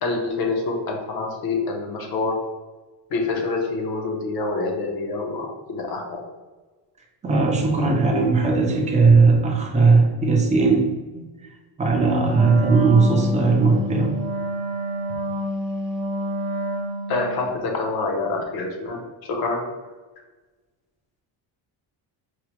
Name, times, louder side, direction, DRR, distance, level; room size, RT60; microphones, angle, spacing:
voice 1, 0.0-2.4 3.1-6.2 17.1-19.6, left 3 dB, 55° left, 2 dB, 0.7 m, -26 dB
voice 2, 7.2-10.9 11.1-11.2 11.8-14.2, right 4 dB, 20° right, 0 dB, 0.3 m, -18 dB
Wind instrument woodwind instrument, 12.3-17.4, right 1 dB, 70° right, 1.0 m, -28 dB
4.6 x 2.1 x 2.9 m, 1.3 s
cardioid pair, 170°, 44 cm